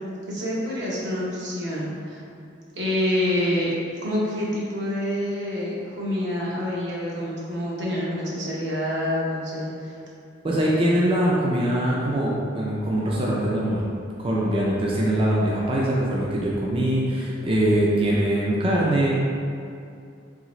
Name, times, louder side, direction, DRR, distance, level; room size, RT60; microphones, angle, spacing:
voice 1, 0.3-2.2 2.8-3.7 4.0-9.9, left 1 dB, 70° right, -6 dB, 0.9 m, -27 dB
voice 2, 10.4-13.8 14.2-19.1, right 1 dB, 30° right, -5 dB, 0.4 m, -22 dB
3.7 x 3.2 x 3.1 m, 2.5 s
head